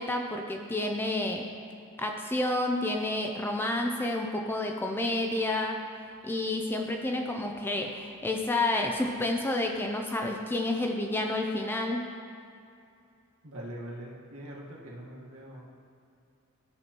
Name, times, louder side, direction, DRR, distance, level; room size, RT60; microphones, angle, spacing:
voice 1, 0.0-1.4 2.0-5.8 6.2-12.0, left 2 dB, 10° left, 2 dB, 0.4 m, -30 dB
voice 2, 13.4-15.7, right 1 dB, 70° right, -4 dB, 1.5 m, -42 dB
13.5 x 6.0 x 2.9 m, 2.5 s
head